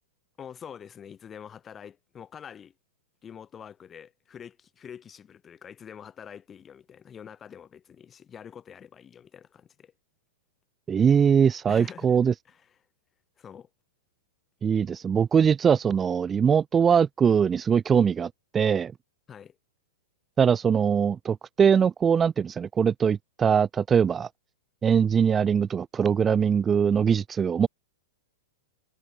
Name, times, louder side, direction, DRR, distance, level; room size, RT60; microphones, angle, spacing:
voice 1, 0.4-2.7 3.2-9.9 11.7-12.2 12.5-12.8 13.4-13.7 19.3-19.6, left 8 dB, 20° left, 2.8 m, -46 dB
voice 2, 10.9-12.3 14.6-18.9 20.4-24.3 24.8-27.7, right 7 dB, 20° right, 0.6 m, -22 dB
figure-of-eight pair, 105°, 0 cm